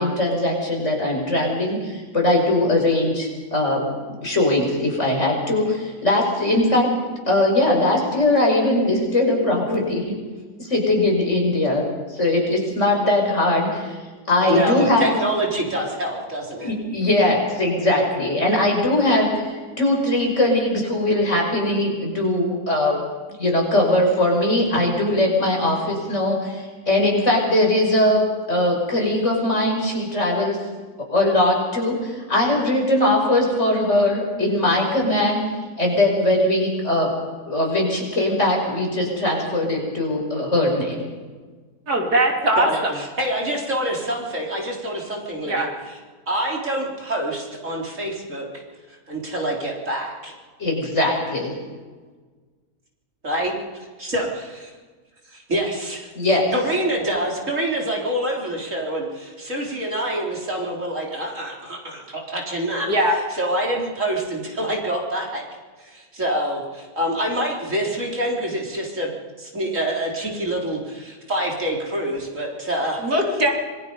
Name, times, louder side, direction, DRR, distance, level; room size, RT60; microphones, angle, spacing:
voice 1, 0.0-3.9 4.2-7.0 7.3-10.2 10.6-11.8 12.1-14.0 14.3-15.2 16.6-23.0 23.4-30.6 31.1-35.4 35.8-37.2 37.5-41.1 50.6-51.5 56.1-56.5, left 1 dB, 45° left, 0 dB, 6.2 m, -20 dB
voice 2, 14.5-16.7 42.6-46.0 46.3-48.5 49.1-50.3 53.2-53.6 54.0-54.7 55.3-56.1 56.5-62.9 63.3-65.4 65.8-69.1 69.4-73.0, right 1 dB, 50° right, -1 dB, 4.4 m, -26 dB
voice 3, 41.9-42.9 45.5-45.7 62.9-63.1 73.0-73.5, right 1 dB, 70° right, 1 dB, 3.7 m, -20 dB
26.5 x 22.5 x 5.4 m, 1.4 s
omnidirectional pair, 1.7 m